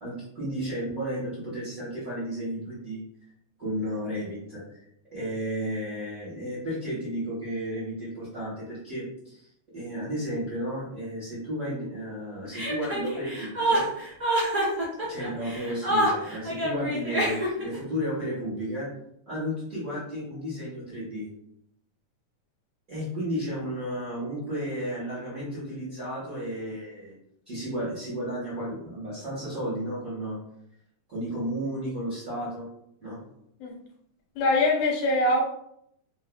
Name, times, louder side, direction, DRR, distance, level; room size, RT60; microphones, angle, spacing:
voice 1, 0.0-3.0 3.6-4.6 5.1-9.5 9.7-13.8 15.1-18.9 19.3-21.3 22.9-27.1 27.4-30.4 31.1-32.7 33.0-33.2, equal, 85° right, -10 dB, 0.7 m, -33 dB
Chuckle chortle, 12.5-17.8, right 1 dB, 55° right, 0.7 m, -27 dB
voice 2, 34.4-35.4, left 2 dB, 75° left, -1 dB, 2.3 m, -23 dB
5.3 x 2.0 x 2.2 m, 0.74 s
omnidirectional pair, 3.9 m